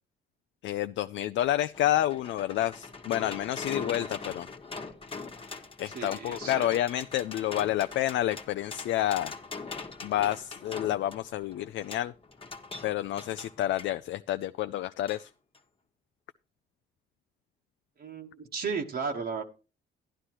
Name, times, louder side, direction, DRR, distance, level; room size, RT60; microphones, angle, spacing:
voice 1, 0.6-4.5 5.8-9.3 10.0-12.1 12.8-15.3, left 13 dB, 70° left, 0.4 m, -29 dB
sound 1, 1.7-13.9 15.1-15.2 15.5-15.6, left 4 dB, 30° left, 1.3 m, -42 dB
voice 2, 5.9-6.8 18.0-19.4, right 5 dB, 55° right, 1.2 m, -34 dB
11.5 x 11.0 x 3.0 m
cardioid pair, 90°, 20 cm